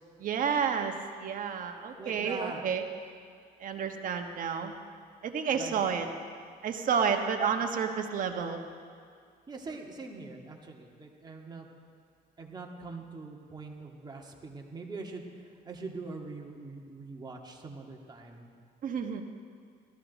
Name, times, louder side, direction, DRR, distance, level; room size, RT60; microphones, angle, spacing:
voice 1, 0.2-2.8 3.6-4.7 5.2-6.1 6.6-8.6 18.8-19.2, right 6 dB, 55° right, 5 dB, 1.3 m, -30 dB
voice 2, 2.0-2.6 5.5-6.0 9.5-11.7 12.4-15.2 15.6-18.5, right 3 dB, 25° right, 0 dB, 1.8 m, -43 dB
17.5 x 13.5 x 4.1 m, 2.2 s
cardioid pair, 110°, 17 cm